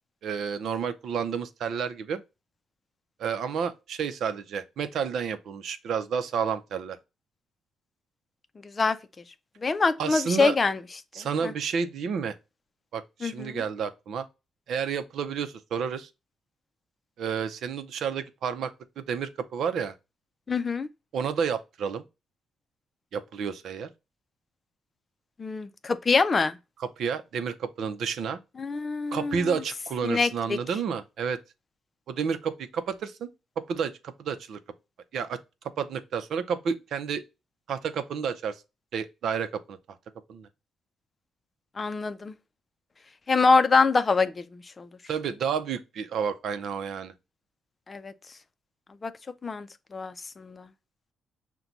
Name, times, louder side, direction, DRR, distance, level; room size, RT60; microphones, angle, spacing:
voice 1, 0.2-2.2 3.2-7.0 10.0-10.6 11.1-12.4 12.9-14.3 14.7-16.1 17.2-19.9 21.1-22.0 23.1-23.9 26.8-28.4 29.1-31.4 32.1-33.3 33.7-34.6 35.1-35.4 35.8-37.2 37.7-38.6 38.9-39.8 40.3-40.5 45.1-47.1, right 6 dB, 75° right, 0.6 m, -30 dB
voice 2, 8.6-9.0 9.6-10.8 11.2-11.5 13.2-13.6 20.5-20.9 25.4-26.6 28.6-29.5 30.0-30.6 41.8-42.3 43.3-44.9 47.9-48.1 49.0-49.1 49.4-50.7, left 4 dB, 35° left, 0.5 m, -25 dB
5.9 x 2.2 x 3.9 m
cardioid pair, 95°, 0 cm